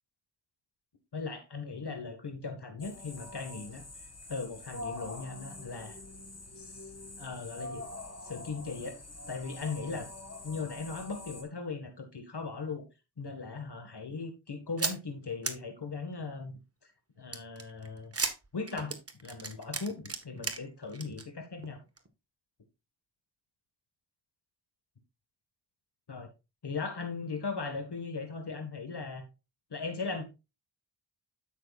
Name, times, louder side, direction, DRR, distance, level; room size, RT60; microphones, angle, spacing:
voice 1, 1.1-3.8 4.3-6.0 6.6-6.9 7.2-7.8 8.2-9.0 9.3-10.1 10.4-12.8 13.2-16.9 17.2-18.1 18.5-18.9 19.2-21.8 26.1-26.3 26.6-29.3 29.7-30.2, left 4 dB, 55° left, 1.7 m, -38 dB
sound 1, 2.8-11.4, left 2 dB, 30° left, 2.2 m, -45 dB
sound 2, 14.8-15.0 15.4-15.5 17.3-20.6 20.9-21.2 21.6-21.7 22.0-22.1, right 3 dB, 30° right, 1.4 m, -34 dB
11.5 x 6.0 x 2.4 m
cardioid pair, 45°, 47 cm